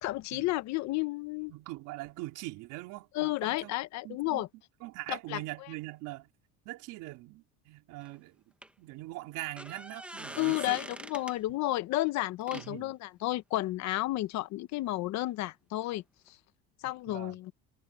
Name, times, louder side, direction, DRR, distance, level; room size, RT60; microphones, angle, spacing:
voice 1, 0.0-1.5 3.1-4.5 5.1-5.4 10.4-16.4 16.8-17.5, left 18 dB, 60° left, 1.0 m, -32 dB
voice 2, 1.5-3.7 4.0-4.4 4.8-6.3 6.6-8.4 8.8-10.8 12.5-12.9 17.1-17.4, right 19 dB, 75° right, 4.5 m, -42 dB
sound 1, 8.0-8.2 8.6-8.7 9.4-11.4 12.4-12.7 15.9-16.0 16.3-16.4, right 1 dB, 5° right, 1.3 m, -44 dB
cardioid pair, 155°, 31 cm